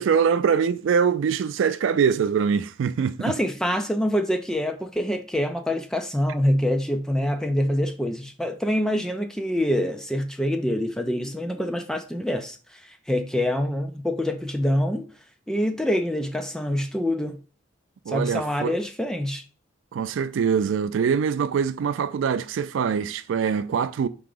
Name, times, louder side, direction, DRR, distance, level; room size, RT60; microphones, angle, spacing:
voice 1, 0.0-3.3 18.1-18.8 19.9-24.1, right 6 dB, 70° right, 0.3 m, -23 dB
voice 2, 3.2-15.1 15.5-17.4 18.1-19.4, left 1 dB, 5° left, 0.4 m, -25 dB
4.6 x 2.9 x 3.8 m
head